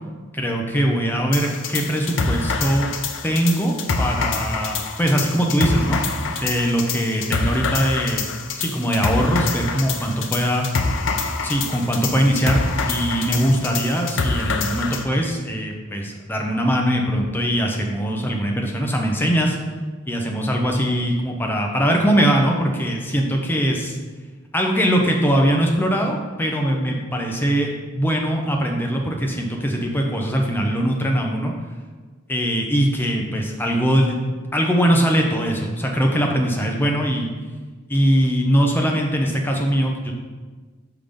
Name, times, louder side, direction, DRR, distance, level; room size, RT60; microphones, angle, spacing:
voice 1, 0.3-2.9 3.2-6.2 6.4-8.3 8.6-10.7 11.4-19.6 20.1-24.0 24.5-31.5 32.3-34.2 34.5-37.3 37.9-40.1, equal, 10° left, 1 dB, 0.6 m, -21 dB
sound 1, 1.3-15.0, left 4 dB, 65° left, 0.5 m, -26 dB
5.7 x 3.5 x 5.2 m, 1.4 s
head